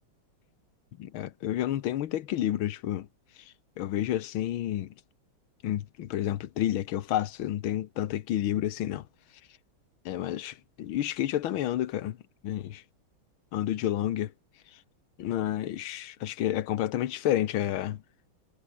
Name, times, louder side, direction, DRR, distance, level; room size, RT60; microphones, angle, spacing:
voice 1, 1.0-3.1 3.8-4.9 5.6-9.0 10.1-12.2 12.4-12.8 13.5-14.3 15.2-18.0, left 12 dB, 80° left, 1.8 m, -30 dB
omnidirectional pair, 2.2 m